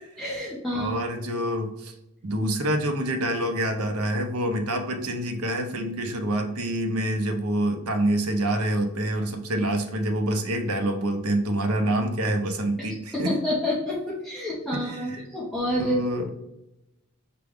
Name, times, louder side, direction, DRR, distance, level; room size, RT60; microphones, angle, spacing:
voice 1, 0.2-0.9 13.1-16.0, left 1 dB, ahead, -8 dB, 0.8 m, -28 dB
voice 2, 0.7-1.9 2.2-13.4 14.7-15.3 15.8-16.3, right 1 dB, 80° right, 5 dB, 0.7 m, -26 dB
5.9 x 2.3 x 3.5 m, 0.89 s
head